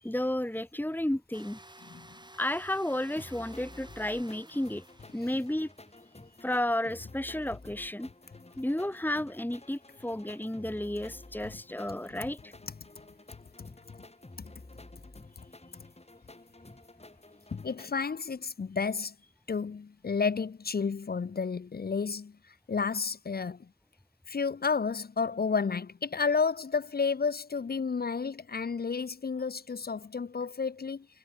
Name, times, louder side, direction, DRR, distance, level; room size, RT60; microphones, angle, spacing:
voice 1, 0.0-1.6 2.4-4.8 5.1-5.7 6.4-8.1 8.6-12.5, left 1 dB, 10° left, 1.5 m, -32 dB
sound 1, 1.3-6.3, right 1 dB, 25° right, 4.6 m, -54 dB
sound 2, 3.2-17.9, left 2 dB, 40° left, 3.1 m, -52 dB
voice 2, 13.6-14.0 14.4-14.5 17.5-19.1 19.5-23.7 24.3-31.1, left 5 dB, 65° left, 0.7 m, -31 dB
wide cardioid pair, 40°, 17 cm